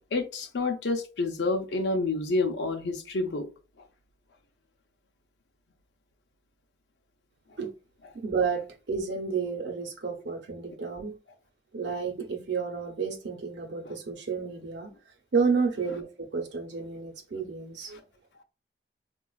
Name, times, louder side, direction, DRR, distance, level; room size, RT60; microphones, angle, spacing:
voice 1, 0.1-3.4 13.8-14.0, left 3 dB, 80° left, 0.6 m, -28 dB
voice 2, 8.2-11.1 11.7-14.9 15.3-18.0, right 5 dB, 80° right, 0.8 m, -31 dB
3.8 x 2.4 x 2.3 m
head